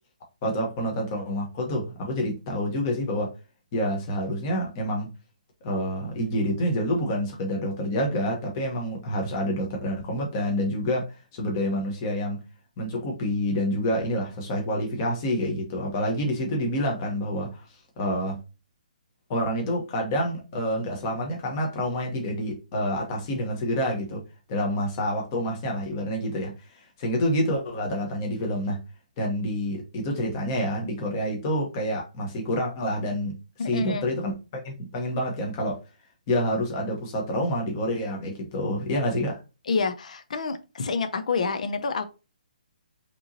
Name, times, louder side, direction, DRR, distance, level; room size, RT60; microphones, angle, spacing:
voice 1, 0.4-3.3 3.7-5.1 5.6-11.0 11.3-12.4 12.8-17.6 18.0-18.4 19.3-24.2 24.5-26.5 27.0-28.8 29.2-33.3 33.7-35.8 36.3-39.4, equal, 20° left, 1.1 m, -27 dB
voice 2, 33.6-34.1 39.7-42.0, left 4 dB, 55° left, 0.6 m, -28 dB
5.3 x 3.0 x 2.7 m
hypercardioid pair, 175°, 5 cm